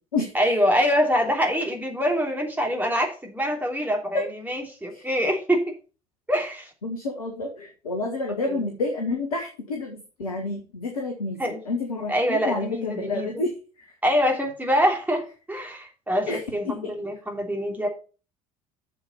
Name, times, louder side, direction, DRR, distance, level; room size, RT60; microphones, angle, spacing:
voice 1, 0.3-5.7 6.3-6.7 8.5-8.7 11.4-11.6 12.1-13.4 14.0-17.9, equal, 10° right, 1 dB, 3.1 m, -25 dB
voice 2, 6.8-13.5 13.8-13.9 16.3-16.4 16.7-16.9, left 3 dB, 75° left, 2 dB, 1.5 m, -29 dB
7.5 x 7.0 x 5.4 m, 0.35 s
figure-of-eight pair, 60°, 18 cm